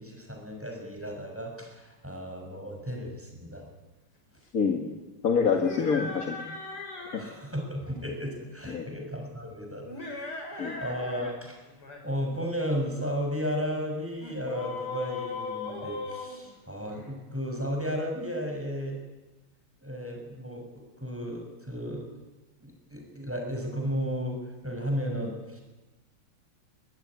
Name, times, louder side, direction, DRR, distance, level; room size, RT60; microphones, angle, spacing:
voice 1, 0.0-3.7 7.2-11.6 12.0-19.0 19.8-22.0 22.6-24.4 24.6-25.6, equal, 5° right, 1 dB, 6.5 m, -34 dB
voice 2, 4.5-4.9 5.2-6.4 7.1-7.2 8.7-8.9 10.6-10.8, left 5 dB, 45° left, 2 dB, 2.2 m, -26 dB
sound 1, 5.5-7.3 9.8-11.3 11.7-12.0 14.2-17.1, left 4 dB, 85° left, 5.5 m, -38 dB
22.5 x 20.5 x 9.9 m, 1.1 s
omnidirectional pair, 2.4 m